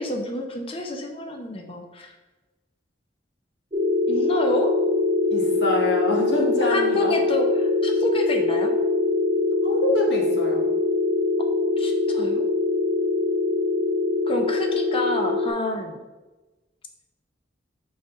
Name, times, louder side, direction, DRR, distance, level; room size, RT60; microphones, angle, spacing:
voice 1, 0.0-2.1 4.1-4.7 6.7-8.7 11.8-12.4 14.3-16.0, left 1 dB, 30° left, 3 dB, 0.8 m, -29 dB
sound 1, 3.7-15.5, left 3 dB, 35° right, 0.7 m, -23 dB
voice 2, 5.3-7.2 9.6-10.7, left 1 dB, 70° left, -1 dB, 1.6 m, -26 dB
6.0 x 5.2 x 3.8 m, 1.1 s
head